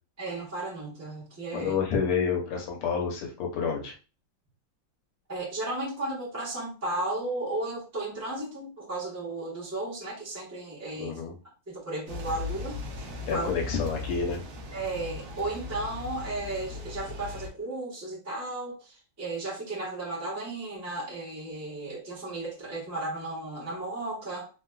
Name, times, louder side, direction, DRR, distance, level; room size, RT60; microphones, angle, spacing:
voice 1, 0.2-1.7 5.3-11.2 11.7-12.8 13.3-13.5 14.7-24.5, right 2 dB, 15° right, -6 dB, 0.6 m, -34 dB
voice 2, 1.5-3.9 11.0-11.3 13.3-14.4, left 6 dB, 90° left, 0 dB, 1.8 m, -29 dB
sound 1, 12.1-17.5, left 3 dB, 70° right, 0.9 m, -38 dB
3.8 x 2.3 x 2.3 m, 0.33 s
omnidirectional pair, 2.3 m